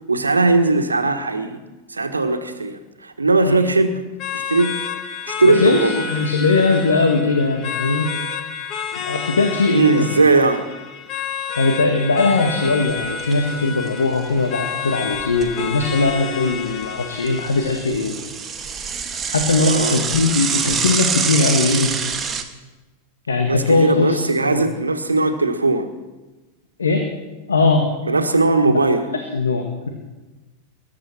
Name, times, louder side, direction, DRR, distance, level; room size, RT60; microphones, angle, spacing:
voice 1, 0.1-1.6 1.9-4.0 4.3-4.8 5.3-6.0 9.7-10.7 19.7-20.0 23.5-25.9 28.0-29.1, right 3 dB, 80° right, 8 dB, 1.5 m, -18 dB
sound 1, 4.2-17.8, left 7 dB, 35° left, 1.5 m, -30 dB
voice 2, 5.5-8.1 9.0-10.1 11.6-18.1 19.3-22.0 23.3-24.2 24.5-24.6 26.8-27.1 27.5-27.9 28.7-28.8 29.1-29.9, left 3 dB, 70° left, 4 dB, 1.8 m, -20 dB
Bicycle / Mechanisms, 12.9-13.5 13.9-14.0 14.2-14.3 15.0-16.1 16.5-22.4, right 6 dB, 20° right, 1.4 m, -25 dB
21.0 x 11.0 x 6.1 m, 1.2 s
figure-of-eight pair, 90°, 0 cm